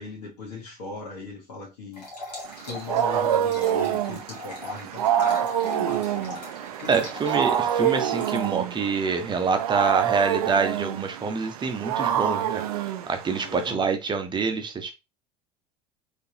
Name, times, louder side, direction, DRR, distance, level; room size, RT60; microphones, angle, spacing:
voice 1, 0.0-2.1 2.7-6.5 6.8-7.1 13.4-13.8, left 3 dB, 65° left, -4 dB, 1.6 m, -38 dB
sound 1, 1.9-8.5, left 2 dB, 85° left, 1.5 m, -40 dB
Wild animals, 2.5-13.7, right 10 dB, 65° right, 0.5 m, -27 dB
voice 2, 6.9-12.6 13.1-14.9, right 5 dB, 20° right, 6 dB, 0.9 m, -26 dB
3.8 x 3.4 x 2.9 m, 0.25 s
figure-of-eight pair, 70°, 21 cm